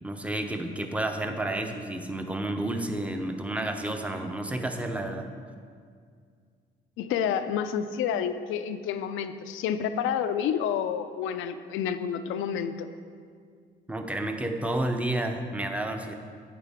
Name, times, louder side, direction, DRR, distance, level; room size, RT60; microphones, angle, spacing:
voice 1, 0.0-5.3 13.9-16.1, right 1 dB, 5° right, 5 dB, 0.7 m, -31 dB
voice 2, 7.0-12.9, left 8 dB, 90° left, 10 dB, 0.5 m, -29 dB
8.9 x 8.4 x 3.6 m, 2.1 s
cardioid pair, 90°, 20 cm